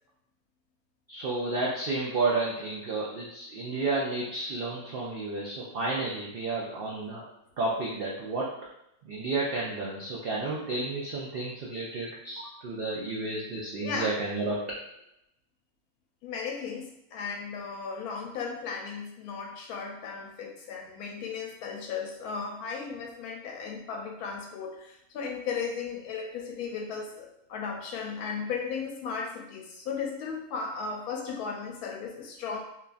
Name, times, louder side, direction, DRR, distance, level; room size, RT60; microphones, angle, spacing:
voice 1, 1.1-7.2 7.6-8.5 9.0-14.6, right 3 dB, 90° right, -5 dB, 0.5 m, -31 dB
voice 2, 13.8-14.2 16.2-32.6, left 5 dB, 85° left, 2 dB, 1.1 m, -36 dB
2.9 x 2.3 x 2.4 m, 0.82 s
omnidirectional pair, 1.6 m